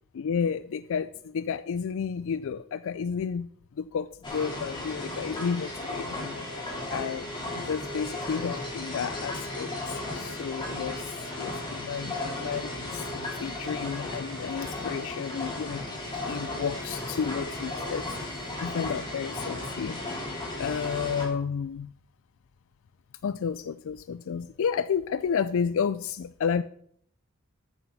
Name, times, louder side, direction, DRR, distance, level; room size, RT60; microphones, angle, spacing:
voice 1, 0.1-3.5 3.8-6.6 6.9-11.1 11.4-20.2 20.6-21.9 23.2-26.6, left 6 dB, 65° left, 14 dB, 0.4 m, -32 dB
sound 1, 4.2-21.3, left 2 dB, 20° left, 3.5 m, -35 dB
12.5 x 9.0 x 4.1 m, 0.65 s
head